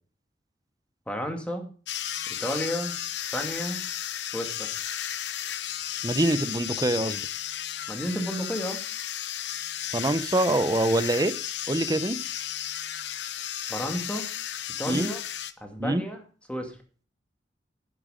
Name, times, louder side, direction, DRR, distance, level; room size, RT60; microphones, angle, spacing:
voice 1, 1.1-1.7 2.4-3.0 3.3-3.8 4.3-4.7 7.9-8.8 13.7-14.3 14.8-15.2 15.6-16.2 16.5-16.7, equal, 5° left, 3 dB, 2.4 m, -31 dB
sound 1, 1.9-15.5, left 11 dB, 65° left, 0.8 m, -34 dB
voice 2, 6.0-7.2 9.9-11.3 11.7-12.2 14.9-15.1 15.8-16.0, right 1 dB, 20° right, 14 dB, 0.7 m, -25 dB
11.5 x 10.0 x 5.0 m, 0.40 s
head